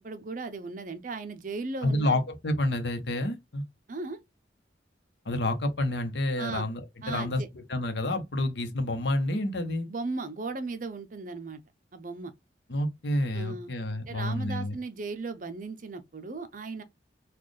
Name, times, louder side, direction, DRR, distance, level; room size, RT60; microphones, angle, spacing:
voice 1, 0.0-2.2 3.9-4.2 6.4-6.6 7.0-7.5 9.6-11.6 11.9-12.3 13.3-13.7 14.1-16.8, right 3 dB, 45° right, 0.6 m, -37 dB
voice 2, 1.8-3.6 5.2-9.9 12.7-14.8, left 1 dB, 65° left, 0.9 m, -29 dB
4.2 x 2.4 x 3.2 m
head